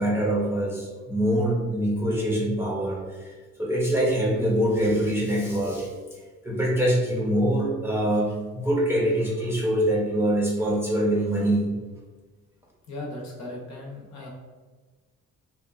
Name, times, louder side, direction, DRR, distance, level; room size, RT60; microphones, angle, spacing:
voice 1, 0.0-3.3 3.6-5.9 6.4-11.7, right 1 dB, 10° right, -5 dB, 0.7 m, -24 dB
voice 2, 12.9-14.3, left 1 dB, 65° left, -2 dB, 0.8 m, -37 dB
2.8 x 2.2 x 2.4 m, 1.3 s
cardioid pair, 90°, 30 cm